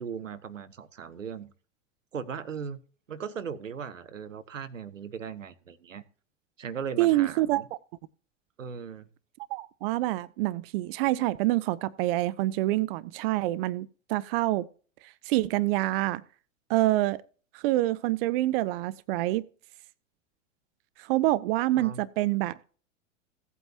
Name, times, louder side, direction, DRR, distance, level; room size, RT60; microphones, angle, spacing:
voice 1, 0.0-1.5 2.1-2.8 3.1-6.0 6.6-7.7 8.6-9.1 21.8-22.0, right 6 dB, 90° right, 0.9 m, -38 dB
voice 2, 7.0-7.6 9.5-14.7 15.3-16.2 16.7-17.2 17.5-19.5 21.0-22.6, right 16 dB, 50° right, 0.6 m, -26 dB
16.5 x 8.2 x 2.8 m
figure-of-eight pair, 90°, 37 cm